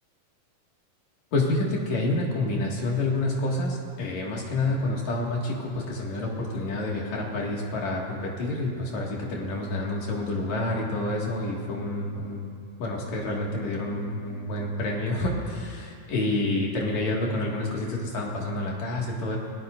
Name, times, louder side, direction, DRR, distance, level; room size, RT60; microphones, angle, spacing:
voice 1, 1.3-12.5 12.8-19.4, left 2 dB, 50° left, -3 dB, 3.0 m, -28 dB
28.5 x 17.0 x 2.6 m, 2.3 s
omnidirectional pair, 4.4 m